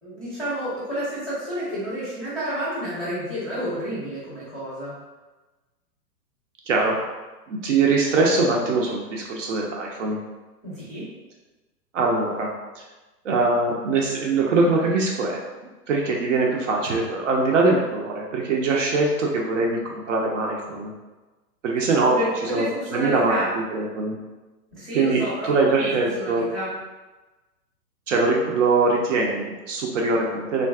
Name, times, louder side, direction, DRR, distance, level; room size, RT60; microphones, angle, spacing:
voice 1, 0.0-4.9 10.6-11.1 21.8-21.9 22.1-23.5 24.7-25.9 26.1-26.7, equal, ahead, -11 dB, 0.6 m, -30 dB
voice 2, 7.5-10.2 11.9-12.5 13.2-15.4 15.9-20.9 21.6-22.2 22.5-22.7 22.9-24.2 24.9-26.5 28.1-30.7, right 3 dB, 50° right, -1 dB, 0.6 m, -22 dB
3.4 x 2.5 x 2.3 m, 1.2 s
hypercardioid pair, 135°, 49 cm